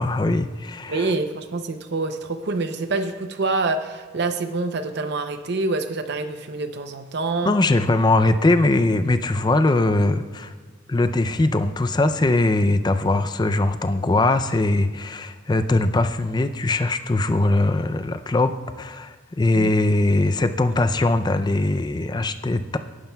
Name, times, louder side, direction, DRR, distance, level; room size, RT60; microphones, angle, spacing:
voice 1, 0.0-1.1 7.4-10.5 10.9-22.8, left 2 dB, 20° left, 10 dB, 0.4 m, -21 dB
voice 2, 0.9-7.6 19.5-19.7, right 3 dB, 55° right, 8 dB, 0.6 m, -26 dB
17.5 x 11.0 x 2.3 m, 1.5 s
head